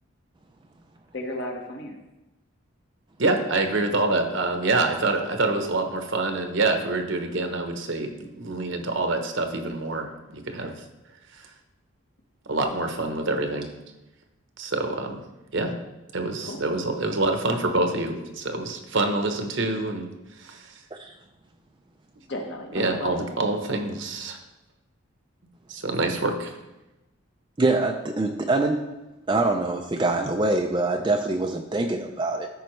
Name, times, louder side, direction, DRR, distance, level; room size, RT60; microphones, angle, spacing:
voice 1, 1.1-2.0 10.6-10.7 16.4-16.6 22.3-23.2, left 1 dB, 55° left, 2 dB, 1.2 m, -34 dB
voice 2, 3.2-10.7 12.5-13.7 14.6-15.2 15.5-15.7 16.1-20.1 20.4-20.7 22.7-24.4 25.7-26.6, right 2 dB, 60° right, 5 dB, 0.9 m, -26 dB
voice 3, 27.6-28.8 29.3-32.5, right 2 dB, 20° right, 3 dB, 0.4 m, -24 dB
13.5 x 5.3 x 3.2 m, 1.0 s
head